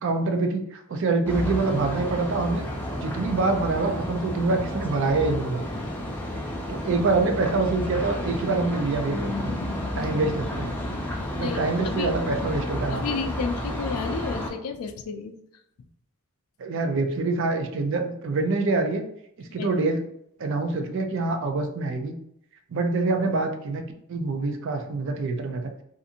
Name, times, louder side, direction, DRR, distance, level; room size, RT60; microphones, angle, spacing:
voice 1, 0.0-2.6 3.0-5.7 6.7-9.5 10.0-10.7 11.3-13.2 16.6-19.0 19.4-20.0 20.4-22.1 22.7-23.8 24.1-25.7, right 3 dB, 60° right, 6 dB, 0.4 m, -25 dB
sound 1, 1.3-14.5, left 1 dB, 10° left, 0.4 m, -31 dB
voice 2, 11.4-12.1 12.9-15.3 19.5-19.7, left 5 dB, 85° left, 8 dB, 0.4 m, -32 dB
2.5 x 2.4 x 2.7 m, 0.75 s
head